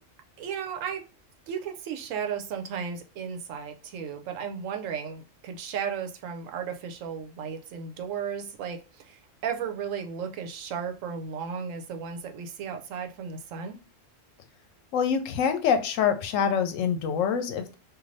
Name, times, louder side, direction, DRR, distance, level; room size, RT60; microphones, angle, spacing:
voice 1, 0.4-1.0 1.5-13.8, right 7 dB, 85° right, 5 dB, 1.0 m, -35 dB
voice 2, 14.9-17.7, left 7 dB, 80° left, 8 dB, 1.0 m, -25 dB
2.6 x 2.5 x 3.1 m, 0.34 s
omnidirectional pair, 1.3 m